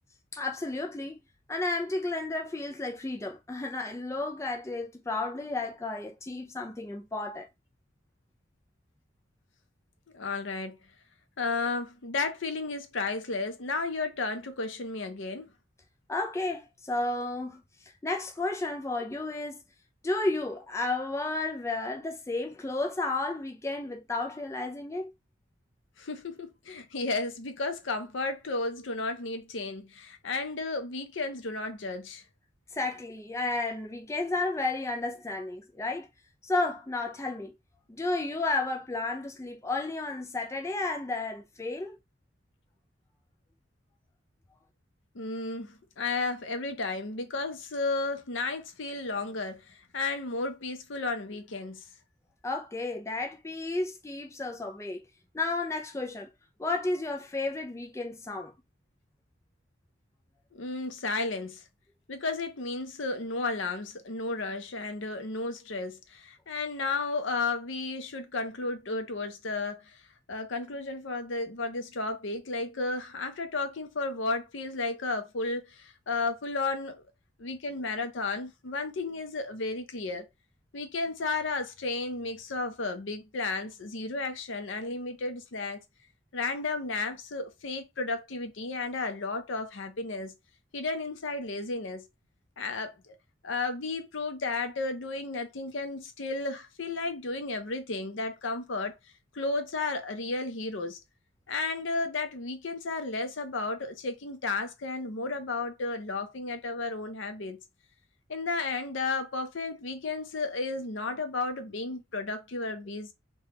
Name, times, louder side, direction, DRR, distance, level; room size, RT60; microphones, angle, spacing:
voice 1, 0.3-1.2 1.5-7.5 16.1-17.6 18.0-19.6 20.0-25.1 32.7-36.1 36.4-37.5 37.9-42.0 52.4-55.0 55.3-56.3 56.6-58.5, left 2 dB, 15° left, 0.4 m, -32 dB
voice 2, 10.1-10.8 11.4-15.5 26.0-32.2 45.1-51.8 60.5-61.6 62.1-70.0 70.3-77.0 77.4-80.2 80.7-85.8 86.3-90.3 90.7-92.1 92.6-93.1 93.4-99.0 99.3-101.0 101.5-107.6 108.3-113.1, left 3 dB, 75° left, 0.7 m, -33 dB
3.3 x 2.3 x 2.9 m
head